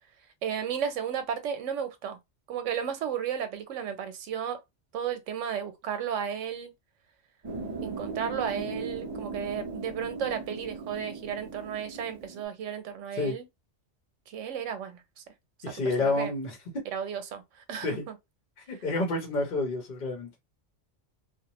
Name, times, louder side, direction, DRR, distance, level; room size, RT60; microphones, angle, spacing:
voice 1, 0.4-2.2 2.5-4.6 4.9-6.7 7.8-13.5 14.3-15.2 15.7-16.3 16.9-17.4 17.7-18.1, right 8 dB, 85° right, 1.0 m, -33 dB
sound 1, 7.4-12.4, right 3 dB, 35° right, 1.0 m, -38 dB
voice 2, 15.6-16.6 17.8-18.0 18.7-20.3, left 2 dB, 50° left, 0.9 m, -29 dB
2.6 x 2.1 x 2.9 m
omnidirectional pair, 1.2 m